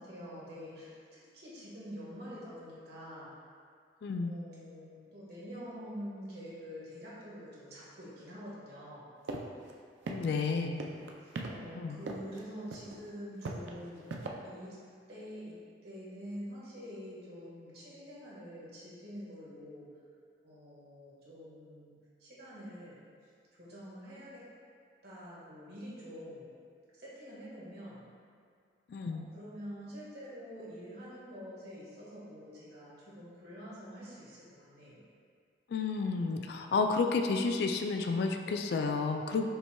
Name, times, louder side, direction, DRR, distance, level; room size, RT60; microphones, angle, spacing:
voice 1, 0.0-3.3 4.2-9.0 11.2-14.0 14.4-14.8 15.1-15.5 15.8-19.9 20.4-23.0 23.6-24.4 25.0-26.5 27.0-28.0 29.1-35.0, equal, 60° right, -8 dB, 1.5 m, -46 dB
voice 2, 4.0-4.4 10.1-10.8 11.8-12.0 28.9-29.3 35.7-39.5, left 4 dB, 60° left, 4 dB, 0.3 m, -31 dB
sound 1, 9.3-9.4 9.7-9.8 10.1-10.5 10.8-11.5 12.1-12.4 12.7-13.0 13.4-14.3, right 3 dB, 90° right, 0.4 m, -38 dB
5.4 x 4.3 x 2.3 m, 2.1 s
head